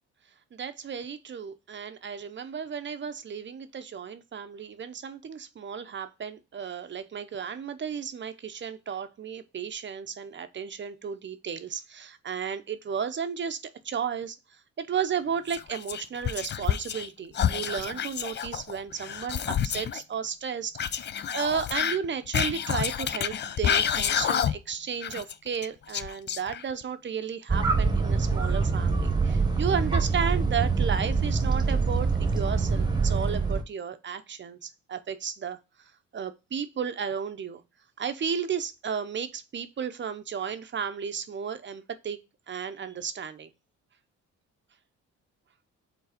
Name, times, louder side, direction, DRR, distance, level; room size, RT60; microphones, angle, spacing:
voice 1, 0.5-13.6 13.8-21.1 21.3-35.6 36.1-37.6 38.0-42.2 42.5-43.5, right 7 dB, 40° right, 0.7 m, -33 dB
Whispering, 15.5-17.1 17.3-20.0 20.8-24.7 25.0-26.8, left 9 dB, 35° left, 0.4 m, -29 dB
sound 1, 27.5-33.6, right 4 dB, 15° right, 1.1 m, -25 dB
4.7 x 4.0 x 5.0 m
cardioid pair, 90°, 30 cm